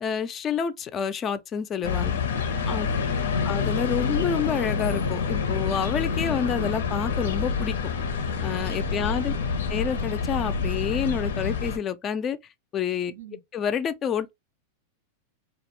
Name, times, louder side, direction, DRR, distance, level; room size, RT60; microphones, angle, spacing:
voice 1, 0.0-2.2 2.7-2.9 3.5-7.7 8.4-9.3 9.7-12.4 12.7-13.1 13.5-14.3, left 7 dB, 30° left, 0.3 m, -28 dB
sound 1, 1.8-11.8, left 5 dB, 85° left, 0.5 m, -27 dB
voice 2, 1.9-3.4 8.8-9.4 13.1-13.4, right 5 dB, 80° right, 0.4 m, -44 dB
2.4 x 2.1 x 3.0 m
hypercardioid pair, 115°, 0 cm